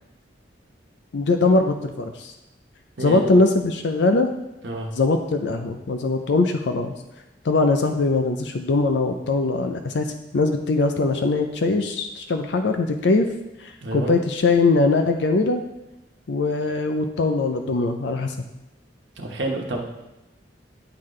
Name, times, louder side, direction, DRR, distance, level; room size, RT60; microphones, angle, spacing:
voice 1, 1.1-2.3 3.0-4.3 5.0-6.9 7.4-13.3 13.6-15.6 16.3-18.3, left 3 dB, 70° left, 6 dB, 0.5 m, -21 dB
voice 2, 3.0-3.4 4.6-4.9 13.8-14.1 19.2-19.9, right 2 dB, 75° right, 0 dB, 1.2 m, -28 dB
10.5 x 3.9 x 3.2 m, 0.96 s
head